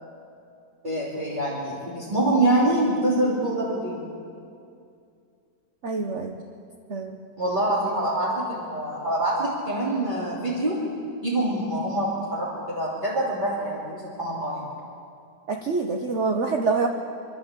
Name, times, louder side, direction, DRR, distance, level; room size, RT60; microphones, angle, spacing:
voice 1, 0.8-4.1 7.4-10.8 11.2-14.7, right 1 dB, 25° right, -8 dB, 3.3 m, -25 dB
voice 2, 5.8-6.4 6.9-7.2 15.5-16.9, right 4 dB, 45° right, 3 dB, 1.2 m, -26 dB
27.0 x 12.0 x 8.3 m, 2.4 s
omnidirectional pair, 1.9 m